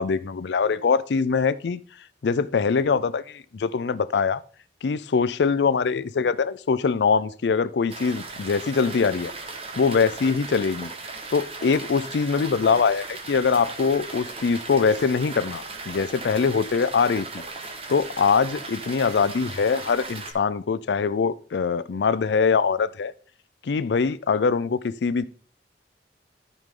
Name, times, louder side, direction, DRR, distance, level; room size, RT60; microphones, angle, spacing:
voice 1, 0.0-1.8 2.2-4.4 4.8-9.3 9.8-10.9 11.3-17.4 17.9-23.1 23.6-25.3, left 5 dB, 75° left, 0.4 m, -23 dB
sound 1, 7.9-20.3, right 3 dB, 35° right, 1.3 m, -37 dB
12.5 x 5.2 x 3.7 m
head